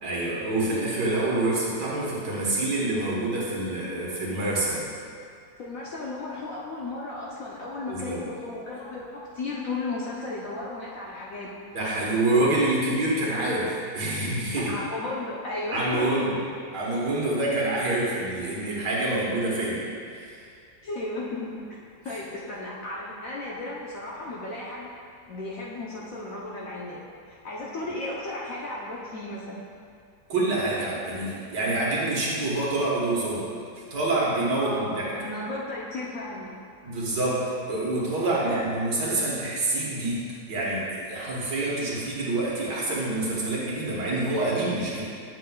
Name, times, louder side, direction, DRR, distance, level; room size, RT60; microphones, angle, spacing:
voice 1, 0.0-4.8 7.9-8.2 11.7-14.7 15.7-16.3 16.7-20.4 30.3-33.5 33.9-35.1 36.8-45.0, right 2 dB, 65° right, -6 dB, 2.0 m, -27 dB
voice 2, 5.6-11.5 14.6-16.3 20.8-21.7 22.0-24.9 25.3-29.6 34.6-36.5 38.2-38.6, left 2 dB, 60° left, -5 dB, 0.9 m, -35 dB
8.6 x 7.1 x 2.3 m, 2.3 s
omnidirectional pair, 2.0 m